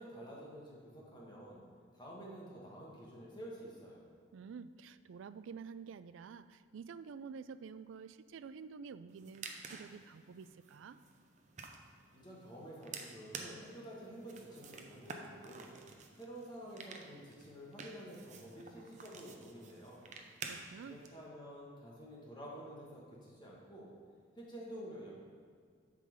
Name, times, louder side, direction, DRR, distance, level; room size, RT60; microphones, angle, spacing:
voice 1, 0.0-1.6 1.9-4.0 12.1-15.7 16.2-20.1 20.9-23.9 24.3-25.1, equal, 25° left, -4 dB, 1.5 m, -50 dB
voice 2, 4.3-11.0 20.5-21.0, right 5 dB, 85° right, 14 dB, 0.3 m, -49 dB
sound 1, 9.1-21.1, right 4 dB, 40° right, 0.6 m, -51 dB
8.5 x 3.8 x 6.4 m, 2.1 s
head